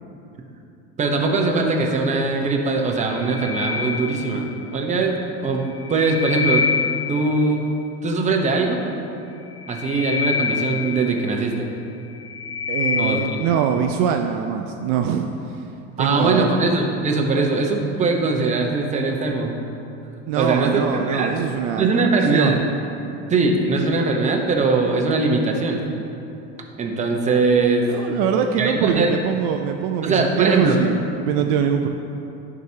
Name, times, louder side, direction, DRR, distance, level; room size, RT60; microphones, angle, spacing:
voice 1, 1.0-4.5 4.7-6.7 7.1-7.6 8.0-8.8 9.7-11.7 13.0-13.4 16.0-19.5 20.4-21.3 21.8-22.6 23.3-25.8 26.8-27.9 28.6-29.1 30.0-30.8, right 3 dB, 25° right, 1 dB, 0.8 m, -21 dB
sound 1, 3.0-4.7 5.6-7.5 9.4-11.5 12.0-13.6, left 5 dB, 30° left, 0.9 m, -26 dB
voice 2, 12.7-15.3 16.0-16.5 20.3-22.6 27.9-31.9, right 8 dB, 65° right, 5 dB, 0.5 m, -23 dB
11.0 x 4.9 x 2.8 m, 2.8 s
supercardioid pair, 120°, 31 cm